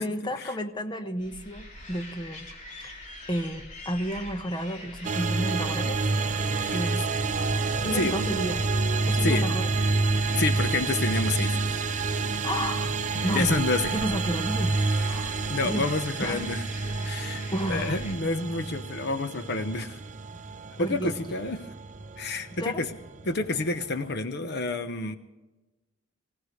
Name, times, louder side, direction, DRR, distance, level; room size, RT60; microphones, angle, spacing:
voice 1, 0.0-2.5 2.8-2.9 3.3-6.0 6.7-7.0 7.8-8.6 9.1-9.7 12.4-12.9 13.2-15.3 15.6-15.9 16.2-16.4 17.5-17.9 20.8-21.1 22.6-22.8, equal, 25° left, 6 dB, 1.1 m, -31 dB
sound 1, 1.2-18.1, left 1 dB, 40° left, 3.5 m, -44 dB
sound 2, 5.0-24.2, right 3 dB, 40° right, 0.7 m, -29 dB
voice 2, 10.4-11.6 12.3-12.5 13.3-13.9 14.9-15.2 15.5-16.6 17.0-20.0 20.8-21.6 22.2-22.9 23.3-25.2, left 3 dB, 55° left, 9 dB, 1.0 m, -29 dB
24.5 x 17.0 x 3.2 m, 1.1 s
head